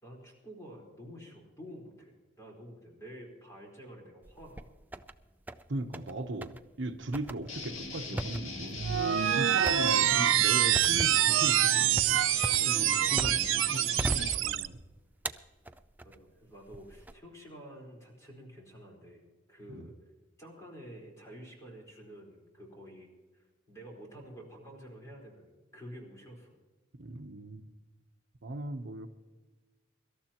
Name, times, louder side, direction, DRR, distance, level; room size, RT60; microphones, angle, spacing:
voice 1, 0.0-4.6 12.6-13.0 16.0-19.2 19.5-19.9 20.4-26.5, equal, 15° left, -1 dB, 4.4 m, -49 dB
sound 1, 4.2-5.1 5.5-6.1 6.4-6.6 7.1-13.6 14.0-14.8 15.3-16.2 16.7-17.1, right 1 dB, 10° right, 0.4 m, -38 dB
voice 2, 5.7-8.8 9.3-11.9 12.7-14.8 19.7-19.9 27.0-27.6 28.4-29.1, right 2 dB, 65° right, 6 dB, 0.9 m, -38 dB
Guitar, 7.5-14.3, left 3 dB, 85° left, 2.2 m, -40 dB
sound 2, 8.8-14.7, right 12 dB, 80° right, 0.5 m, -26 dB
24.5 x 13.0 x 3.0 m, 1.2 s
head